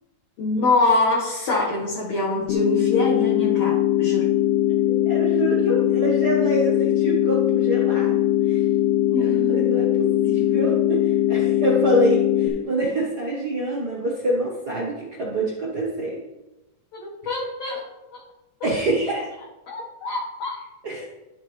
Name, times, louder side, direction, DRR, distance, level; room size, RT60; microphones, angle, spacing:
voice 1, 0.4-4.3 9.1-9.7 10.2-10.7 16.9-17.8 18.6-18.7 19.7-20.6, left 2 dB, 60° left, -5 dB, 2.4 m, -25 dB
sound 1, 2.5-12.5, left 13 dB, 85° left, 2.6 m, -20 dB
voice 2, 5.0-8.1 8.5-8.6 9.2-16.2 18.6-19.3 20.8-21.1, right 1 dB, 60° right, -2 dB, 1.0 m, -26 dB
12.0 x 7.3 x 3.2 m, 1.0 s
omnidirectional pair, 3.6 m